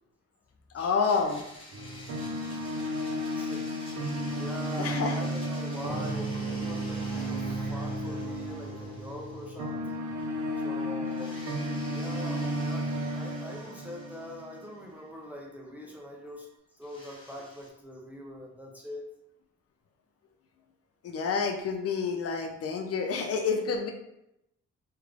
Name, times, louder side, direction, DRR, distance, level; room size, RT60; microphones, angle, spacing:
voice 1, 0.7-1.4 4.8-5.2 21.0-23.9, left 5 dB, 55° left, 3 dB, 0.4 m, -28 dB
Domestic sounds home sounds, 0.8-9.9 10.2-10.3 11.0-15.0 16.8-17.7, left 1 dB, 20° left, 0.8 m, -49 dB
sound 1, 1.7-14.9, equal, 80° right, 0.7 m, -33 dB
voice 2, 3.4-3.7 4.3-10.1 10.6-11.4 11.9-16.5 16.8-19.1, equal, 5° right, -2 dB, 0.4 m, -43 dB
3.3 x 2.4 x 3.2 m, 0.84 s
wide cardioid pair, 175°, 29 cm